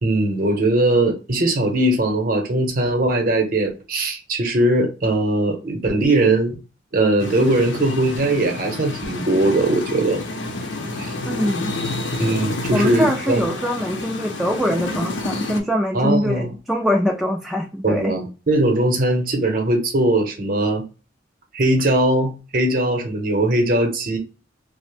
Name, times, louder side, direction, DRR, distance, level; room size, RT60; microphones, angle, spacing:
voice 1, 0.0-6.6 6.9-10.2 11.0-11.1 12.2-13.5 15.9-16.5 17.8-20.8 21.5-24.2, right 1 dB, 50° right, 0.8 m, -20 dB
sound 1, 7.2-15.6, left 2 dB, 75° left, 0.6 m, -29 dB
voice 2, 11.2-11.7 12.7-18.1, equal, ahead, 0.3 m, -23 dB
2.8 x 2.0 x 3.2 m
head